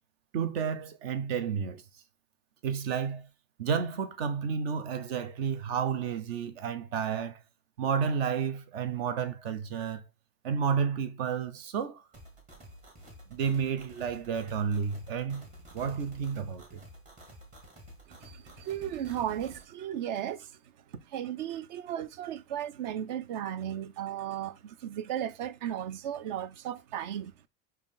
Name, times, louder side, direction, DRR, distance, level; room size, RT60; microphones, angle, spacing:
voice 1, 0.3-1.8 2.6-3.3 3.6-7.4 7.8-10.0 10.4-12.0 13.3-15.5 15.7-16.8, right 7 dB, 55° right, 1.0 m, -31 dB
sound 1, 12.1-19.6, equal, 20° right, 1.6 m, -51 dB
voice 2, 18.1-20.6 21.1-27.3, right 10 dB, 40° right, 0.4 m, -35 dB
5.5 x 4.7 x 3.7 m
supercardioid pair, 175°, 36 cm